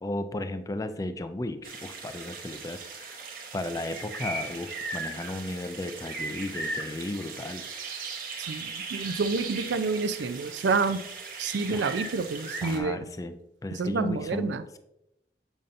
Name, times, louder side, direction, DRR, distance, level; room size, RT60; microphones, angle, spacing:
voice 1, 0.0-3.2 3.5-7.6 11.7-11.9 12.6-13.4 13.6-14.8, left 1 dB, 20° left, 10 dB, 0.3 m, -35 dB
sound 1, 1.6-12.8, right 3 dB, 50° right, 0.9 m, -38 dB
voice 2, 8.4-11.0 11.4-13.1 13.7-14.6, right 4 dB, 85° right, 12 dB, 0.4 m, -28 dB
7.1 x 5.3 x 2.5 m, 0.85 s
head